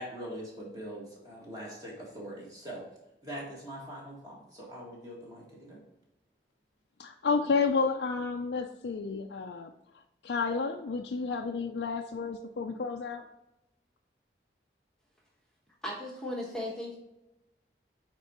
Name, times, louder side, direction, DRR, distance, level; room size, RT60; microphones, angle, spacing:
voice 1, 0.0-2.8 3.2-5.8, equal, 20° right, -4 dB, 1.9 m, -42 dB
voice 2, 7.0-9.7 10.2-13.2, left 4 dB, 80° left, 4 dB, 0.4 m, -31 dB
voice 3, 15.8-17.0, left 1 dB, 5° left, -3 dB, 1.1 m, -36 dB
8.8 x 3.7 x 2.9 m, 0.90 s
head